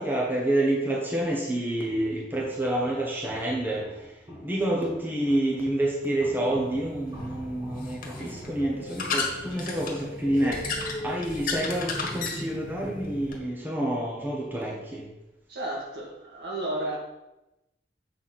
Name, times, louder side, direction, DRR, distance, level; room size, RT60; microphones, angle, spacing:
voice 1, 0.0-4.1 4.4-15.1, right 1 dB, 10° right, -3 dB, 1.3 m, -28 dB
Walk footsteps, 1.9-8.6, equal, 25° right, 2.4 m, -49 dB
sound 1, 6.5-13.4, left 3 dB, 50° left, 1.5 m, -34 dB
voice 2, 15.5-17.0, right 1 dB, 65° right, -4 dB, 2.6 m, -32 dB
7.5 x 4.7 x 6.1 m, 0.96 s
head